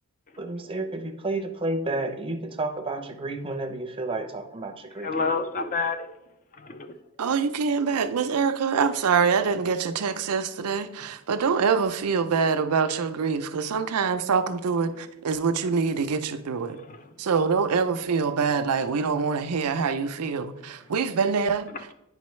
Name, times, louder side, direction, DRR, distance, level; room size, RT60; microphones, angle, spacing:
voice 1, 0.4-5.1, right 2 dB, 25° right, 0.6 m, -31 dB
voice 2, 5.0-6.1 6.6-6.9 11.0-11.1 16.8-17.1 21.7-21.8, left 4 dB, 35° left, 0.5 m, -29 dB
voice 3, 7.2-16.8 17.2-21.7, right 5 dB, 85° right, 0.5 m, -25 dB
9.1 x 5.2 x 3.1 m
head